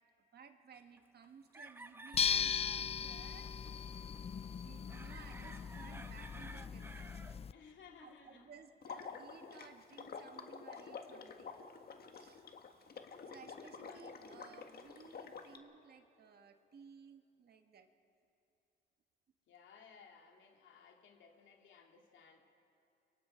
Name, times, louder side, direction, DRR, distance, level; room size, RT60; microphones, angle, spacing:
voice 1, 0.3-3.5 4.0-4.2 4.5-7.1 7.6-7.7 8.0-11.6 12.1-12.8 13.2-17.9, right 6 dB, 55° right, 6 dB, 1.6 m, -58 dB
sound 1, 0.7-1.3 1.5-2.9 3.2-3.7 4.2-4.3 4.4-7.4 8.1-8.2 8.4-8.5, right 2 dB, 10° right, 0.7 m, -53 dB
sound 2, 2.1-7.5, left 7 dB, 30° left, 0.4 m, -38 dB
voice 2, 7.5-8.5 13.5-14.7 19.5-22.5, left 6 dB, 70° left, 2 dB, 2.7 m, -60 dB
Water / Liquid, 8.8-15.6, left 5 dB, 50° left, 1.7 m, -49 dB
29.5 x 23.5 x 4.5 m, 2.6 s
cardioid pair, 90°, 20 cm